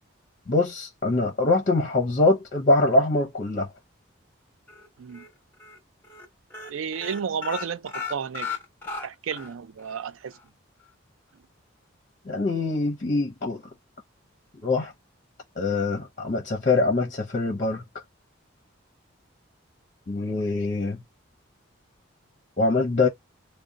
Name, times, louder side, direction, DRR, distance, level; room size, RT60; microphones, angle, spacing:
voice 1, 0.5-3.7 12.3-13.6 14.6-14.9 15.6-17.8 20.1-21.0 22.6-23.1, left 2 dB, 35° left, 0.6 m, -23 dB
sound 1, 4.7-5.3 5.6-5.8 6.0-6.3 6.5-9.5 9.9-10.0 10.3-10.4, left 5 dB, 10° left, 0.9 m, -35 dB
voice 2, 6.7-8.5 9.0-10.4, right 6 dB, 75° right, 0.4 m, -32 dB
3.7 x 2.1 x 3.8 m
head